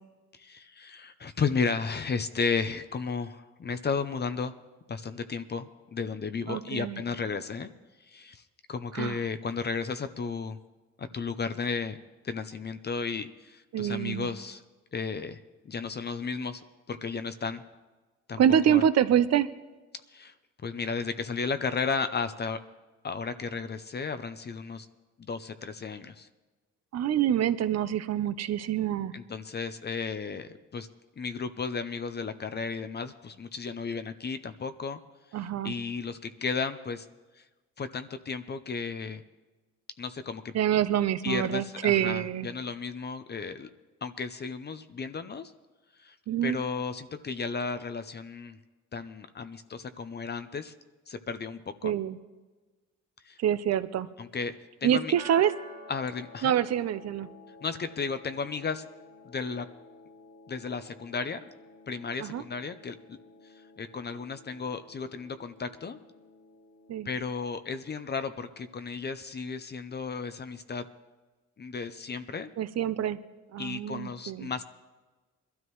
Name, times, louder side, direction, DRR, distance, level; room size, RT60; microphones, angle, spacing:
voice 1, 0.3-4.5 4.9-7.7 8.0-8.4 8.7-10.6 11.0-12.0 12.2-14.6 14.9-16.6 16.9-17.6 18.3-18.4 18.7-18.8 20.1-20.3 20.6-22.6 23.0-24.9 25.2-26.3 29.1-30.9 31.2-35.0 35.3-37.1 37.4-37.5 37.8-39.2 40.0-40.5 41.2-43.7 44.0-45.5 46.0-46.2 46.4-48.6 48.9-50.7 51.1-51.9 53.2-53.4 54.2-54.5 54.8-55.1 55.9-56.5 57.6-58.8 59.2-59.7 60.5-61.5 61.9-63.2 63.8-66.0 67.0-70.9 71.6-72.5 73.6-74.6, left 5 dB, 35° left, 10 dB, 0.7 m, -34 dB
voice 2, 6.5-7.0 8.9-9.2 13.7-14.3 18.4-19.5 26.9-29.1 35.3-35.7 40.5-42.5 46.3-46.6 51.8-52.2 53.4-54.1 54.8-55.5 56.4-57.3 62.2-62.4 66.9-67.1 72.6-73.2 73.5-74.5, right 10 dB, 55° right, 13 dB, 0.7 m, -26 dB
sound 1, 55.1-67.1, left 2 dB, 80° left, 4.1 m, -52 dB
22.0 x 12.5 x 3.1 m, 1.2 s
cardioid pair, 90°, 30 cm